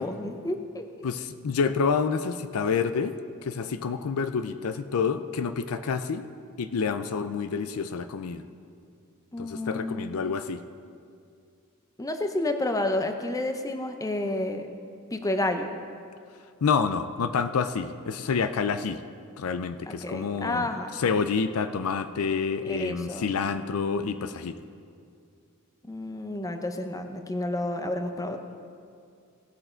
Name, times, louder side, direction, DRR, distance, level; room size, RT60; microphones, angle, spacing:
voice 1, 0.0-0.9 9.3-10.1 12.0-14.7 15.1-15.7 19.9-20.9 22.6-23.3 25.8-28.4, left 1 dB, 15° left, 6 dB, 0.6 m, -30 dB
voice 2, 1.0-3.2 3.4-6.3 6.6-8.4 9.4-10.6 16.6-19.0 19.4-20.7 21.0-24.6, left 5 dB, 70° left, 11 dB, 0.4 m, -28 dB
17.5 x 6.6 x 4.4 m, 2.3 s
head